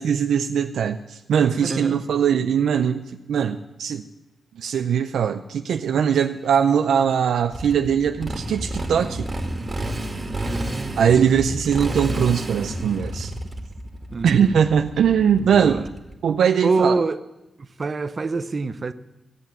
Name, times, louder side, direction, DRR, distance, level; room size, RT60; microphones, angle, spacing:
voice 1, 0.0-4.0 4.6-9.3 11.0-13.3 14.2-15.8 16.2-17.0, right 8 dB, 90° right, 0.5 m, -21 dB
voice 2, 1.6-2.0 10.3-11.1 14.1-14.7 15.4-15.9 16.6-17.2 17.6-18.9, right 3 dB, 45° right, 0.7 m, -26 dB
Motorcycle, 7.5-16.1, right 1 dB, 25° right, 2.2 m, -30 dB
15.5 x 8.2 x 7.4 m
cardioid pair, 70°, 0 cm